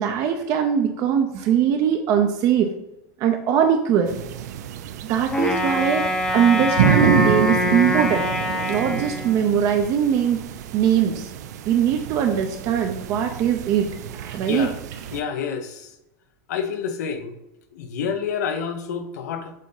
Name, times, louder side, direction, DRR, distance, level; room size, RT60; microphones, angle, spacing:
voice 1, 0.0-2.7 3.2-4.2 5.0-6.0 6.3-8.3 8.7-10.4 10.7-11.3 11.7-13.9 14.1-14.7, right 8 dB, 40° right, 5 dB, 0.5 m, -21 dB
sound 1, 4.1-15.2, right 9 dB, 85° right, 0.4 m, -28 dB
Wind instrument woodwind instrument, 5.3-9.7, left 1 dB, 10° left, 0.6 m, -24 dB
voice 2, 15.1-15.9 16.5-17.4 17.7-19.5, left 6 dB, 85° left, 7 dB, 0.9 m, -28 dB
7.3 x 2.7 x 5.4 m, 0.92 s
supercardioid pair, 160°, 9 cm